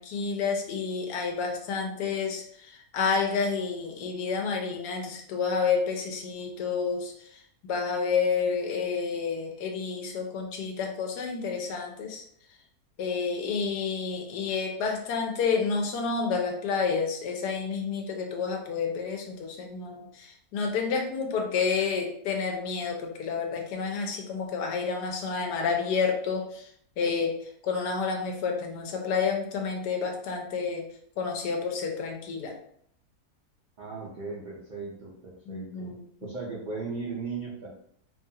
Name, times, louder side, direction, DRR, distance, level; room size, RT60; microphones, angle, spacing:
voice 1, 0.0-7.1 7.6-12.2 13.0-26.7 27.0-27.4 27.6-30.8 31.2-32.5 35.5-36.1, left 5 dB, 80° left, 2 dB, 1.2 m, -29 dB
voice 2, 33.8-35.9 36.2-37.7, right 4 dB, 75° right, -6 dB, 0.4 m, -37 dB
2.9 x 2.3 x 2.7 m, 0.67 s
omnidirectional pair, 1.7 m